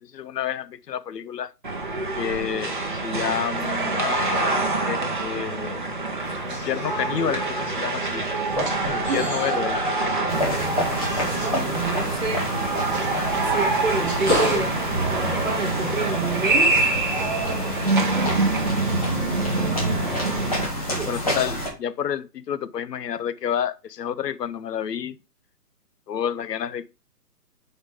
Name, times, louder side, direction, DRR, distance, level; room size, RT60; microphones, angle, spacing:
voice 1, 0.1-1.5 2.1-5.8 6.5-8.2 8.9-9.8 21.1-25.2 26.1-26.9, left 9 dB, 85° left, 0.7 m, -29 dB
sound 1, 1.6-20.7, right 3 dB, 30° right, 0.8 m, -26 dB
sound 2, 6.2-20.5 20.8-21.4, left 1 dB, ahead, 2.4 m, -35 dB
voice 2, 10.2-12.5 13.4-16.8 18.1-18.5 19.7-19.8 20.9-21.2, right 4 dB, 50° right, 1.3 m, -30 dB
sound 3, 10.3-21.7, equal, 25° left, 1.2 m, -29 dB
5.0 x 4.4 x 4.8 m
hypercardioid pair, 180°, 47 cm